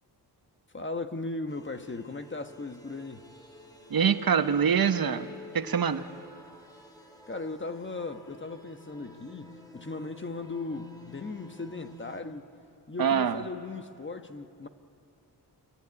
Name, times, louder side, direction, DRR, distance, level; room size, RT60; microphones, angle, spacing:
voice 1, 0.7-3.3 7.3-12.5 12.9-14.7, left 3 dB, 30° left, 1.3 m, -37 dB
sound 1, 1.5-12.2, left 3 dB, 10° left, 3.4 m, -50 dB
voice 2, 3.9-5.3 5.5-6.0 13.0-13.4, right 7 dB, 60° right, 1.0 m, -24 dB
26.5 x 22.5 x 9.7 m
wide cardioid pair, 110°, 41 cm